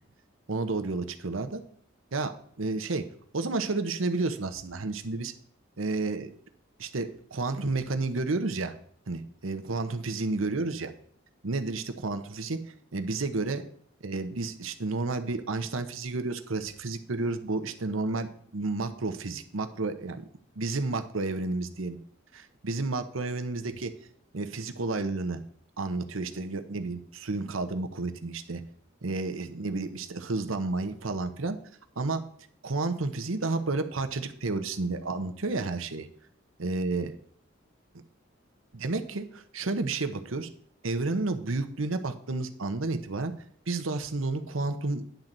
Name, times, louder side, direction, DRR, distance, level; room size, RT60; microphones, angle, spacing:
voice 1, 0.5-1.6 2.1-3.0 3.3-5.3 5.8-6.3 6.8-8.8 9.1-10.9 11.4-12.6 12.9-13.6 14.0-20.3 20.6-22.0 22.3-23.9 24.3-25.4 25.8-28.6 29.0-31.6 32.0-32.2 32.6-36.1 36.6-37.1 38.7-40.5 40.8-43.3 43.7-45.0, right 3 dB, 85° right, 8 dB, 0.9 m, -31 dB
10.5 x 4.0 x 7.5 m, 0.62 s
head